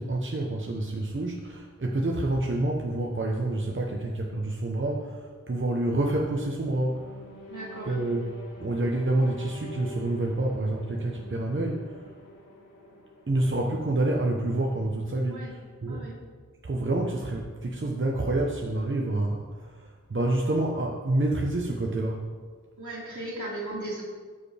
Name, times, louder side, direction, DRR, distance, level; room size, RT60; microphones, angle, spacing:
voice 1, 0.0-7.1 7.9-8.3 8.6-12.0 13.3-16.1 16.6-22.3, right 2 dB, 40° right, -1 dB, 0.9 m, -28 dB
sound 1, 6.8-14.0, left 1 dB, 85° left, 1.4 m, -45 dB
voice 2, 7.5-7.9 15.3-15.5 15.9-16.1 22.8-24.0, right 1 dB, 70° right, -6 dB, 2.7 m, -36 dB
13.5 x 4.8 x 3.4 m, 1.5 s
wide cardioid pair, 55°, 31 cm